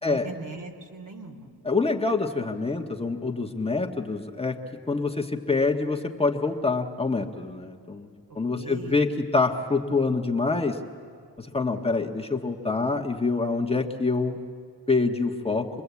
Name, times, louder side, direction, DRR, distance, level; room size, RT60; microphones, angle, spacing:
voice 1, 0.0-1.5 8.3-9.1, right 3 dB, 55° right, 3 dB, 2.9 m, -40 dB
voice 2, 1.7-4.6 4.9-8.1 8.4-10.8 11.4-14.4 14.9-15.7, left 3 dB, 15° left, 1 dB, 1.6 m, -26 dB
26.5 x 21.0 x 8.5 m, 2.3 s
cardioid pair, 75°, 37 cm